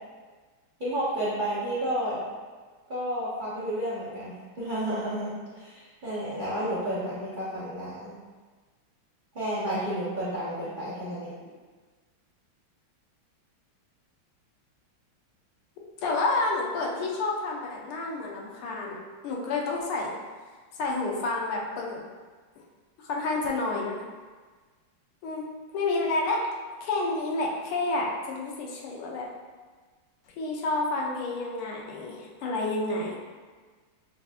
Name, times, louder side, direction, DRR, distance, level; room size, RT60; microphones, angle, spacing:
voice 1, 0.8-2.2 2.9-5.3 5.6-8.1 9.3-11.3, right 1 dB, 75° right, -10 dB, 0.4 m, -31 dB
voice 2, 16.0-19.0 19.2-20.1 20.8-22.0 23.0-24.0 25.2-25.4 25.7-26.4 26.8-29.3 30.4-33.2, left 2 dB, 85° left, -2 dB, 1.6 m, -29 dB
6.9 x 2.6 x 2.4 m, 1.4 s
omnidirectional pair, 2.3 m